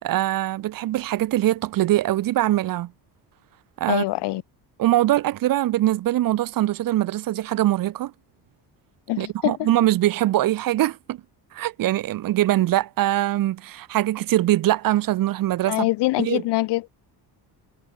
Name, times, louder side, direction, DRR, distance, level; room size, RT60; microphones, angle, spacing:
voice 1, 0.0-2.9 3.8-4.0 4.8-8.1 9.2-11.2 11.5-15.9 16.2-16.4, right 14 dB, 55° right, 2.1 m, -22 dB
voice 2, 3.9-4.4 9.1-9.7 15.6-16.9, left 18 dB, 80° left, 3.8 m, -24 dB
cardioid pair, 170°, 40 cm